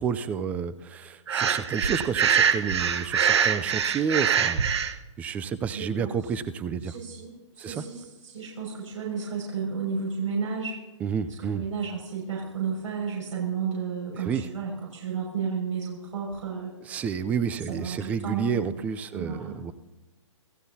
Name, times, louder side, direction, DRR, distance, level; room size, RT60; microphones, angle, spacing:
voice 1, 0.0-4.8 5.2-6.9 7.6-7.8 11.0-11.6 14.1-14.5 16.8-19.7, right 7 dB, 10° right, 15 dB, 0.4 m, -30 dB
Breathing, 1.3-4.9, right 7 dB, 60° right, 1.1 m, -24 dB
voice 2, 5.7-6.1 6.9-10.8 11.4-16.7 17.7-18.8 19.1-19.6, right 5 dB, 80° right, -4 dB, 5.9 m, -32 dB
27.5 x 14.5 x 2.8 m, 1.1 s
hypercardioid pair, 145°, 16 cm